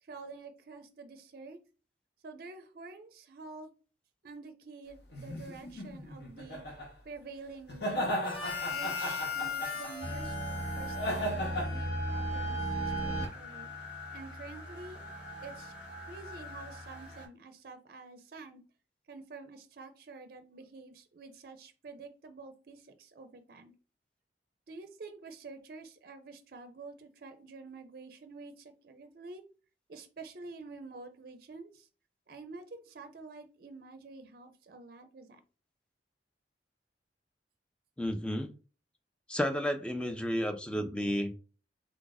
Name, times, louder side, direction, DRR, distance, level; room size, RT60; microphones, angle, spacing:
voice 1, 0.0-1.6 2.2-3.7 4.2-6.6 7.0-8.1 8.6-13.7 14.1-15.0 15.4-15.7 16.0-18.6 19.1-23.7 24.7-29.4 29.9-31.9 32.3-35.4, right 3 dB, 55° right, 0.5 m, -48 dB
sound 1, 5.1-6.9 7.7-10.0 10.9-11.7, equal, 65° left, 1.0 m, -35 dB
Harmonica, 8.2-12.0, left 6 dB, 30° left, 0.8 m, -39 dB
sound 2, 10.0-17.2, right 1 dB, 90° left, 1.7 m, -37 dB
voice 2, 38.0-38.5 39.3-41.3, equal, 5° left, 0.4 m, -32 dB
3.4 x 2.4 x 3.9 m
head